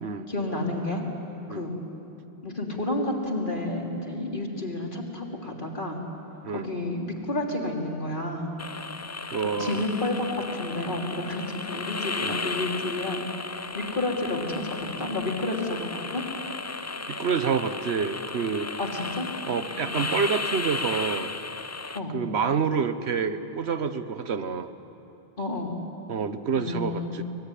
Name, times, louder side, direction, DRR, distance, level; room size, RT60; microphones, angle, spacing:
voice 1, 0.3-1.0 1.5-1.8 2.4-6.0 6.5-8.5 9.4-13.2 13.7-16.2 18.8-19.3 19.9-20.0 21.9-22.2 25.4-25.7 26.5-27.2, left 2 dB, 50° left, 0 dB, 3.4 m, -30 dB
sound 1, 8.6-22.0, left 3 dB, 25° left, 0.3 m, -34 dB
voice 2, 9.3-9.8 12.2-12.4 17.1-18.7 19.5-21.3 22.1-24.7 26.1-27.2, right 6 dB, 80° right, 11 dB, 1.3 m, -28 dB
23.5 x 20.5 x 9.9 m, 2.9 s
omnidirectional pair, 1.1 m